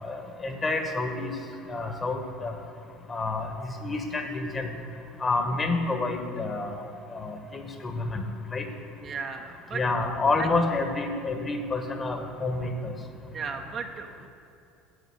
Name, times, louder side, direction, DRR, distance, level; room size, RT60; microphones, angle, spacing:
voice 1, 0.0-1.3 1.7-2.5 3.1-4.7 5.2-6.8 7.1-8.2 8.5-8.6 9.7-12.9, left 3 dB, 25° left, 5 dB, 1.6 m, -29 dB
voice 2, 9.0-9.8 10.4-10.5 13.3-14.3, right 5 dB, 40° right, 3 dB, 1.1 m, -35 dB
10.5 x 7.7 x 8.1 m, 2.6 s
figure-of-eight pair, 65°, 0 cm